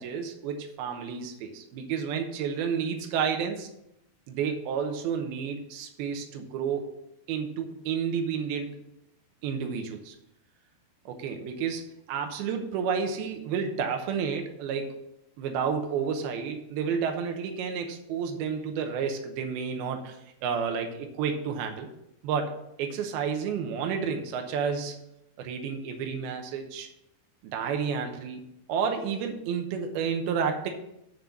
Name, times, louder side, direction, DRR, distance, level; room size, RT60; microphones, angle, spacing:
voice 1, 0.0-3.7 4.3-6.9 7.3-8.8 9.4-10.2 11.1-14.9 15.4-21.9 22.2-22.5 22.8-25.0 25.4-26.9 27.5-28.4 28.7-30.7, right 6 dB, 80° right, 4 dB, 2.8 m, -31 dB
10.5 x 3.9 x 7.1 m, 0.83 s
omnidirectional pair, 4.5 m